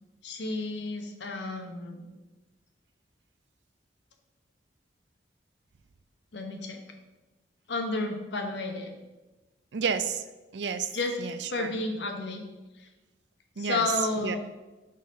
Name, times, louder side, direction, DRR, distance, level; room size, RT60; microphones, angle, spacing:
voice 1, 0.2-2.0 6.3-6.8 7.7-8.9 10.9-11.2 11.5-12.4 13.6-14.4, left 3 dB, 75° left, 3 dB, 1.0 m, -31 dB
voice 2, 9.7-10.2 10.5-10.9 11.2-11.7 13.6-13.9 14.2-14.4, right 6 dB, 70° right, 11 dB, 0.5 m, -30 dB
6.5 x 4.1 x 5.2 m, 1.1 s
head